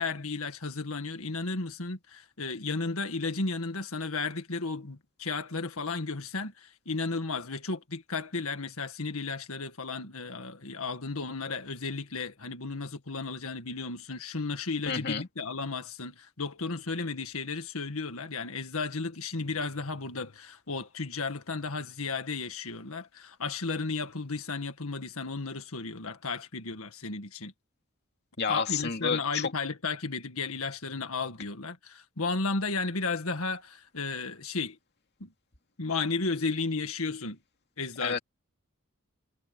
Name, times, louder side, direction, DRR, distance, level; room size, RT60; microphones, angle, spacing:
voice 1, 0.0-27.5 28.5-34.8 35.2-35.3 35.8-37.4 37.8-38.2, left 4 dB, 70° left, 1.9 m, -34 dB
voice 2, 14.9-15.3 28.4-29.5 38.0-38.2, left 5 dB, 50° left, 2.7 m, -30 dB
head